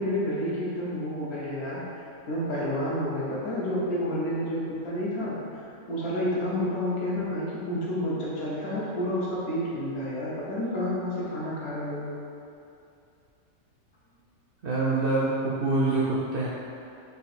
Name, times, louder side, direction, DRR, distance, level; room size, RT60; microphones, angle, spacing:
voice 1, 0.0-12.1, left 1 dB, 85° left, -6 dB, 1.4 m, -30 dB
voice 2, 14.6-16.5, right 2 dB, 75° right, -7 dB, 0.5 m, -25 dB
3.9 x 2.5 x 4.1 m, 2.6 s
omnidirectional pair, 1.5 m